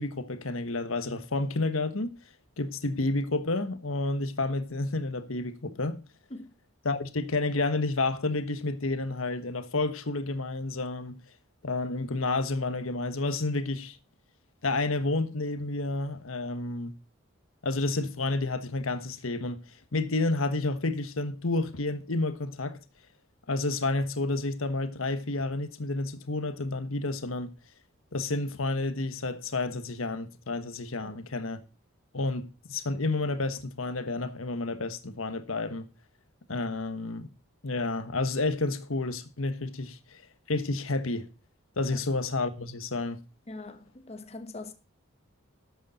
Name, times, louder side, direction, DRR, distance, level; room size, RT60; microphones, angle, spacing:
voice 1, 0.0-2.1 2.6-6.0 6.8-11.2 11.6-14.0 14.6-17.0 17.6-19.6 19.9-22.8 23.5-27.5 28.1-31.6 32.1-35.9 36.5-37.3 37.6-40.2 40.5-41.3 41.8-43.2, left 2 dB, 80° left, 1.3 m, -30 dB
voice 2, 43.5-44.7, left 2 dB, 30° left, 1.2 m, -42 dB
12.5 x 8.4 x 4.2 m
head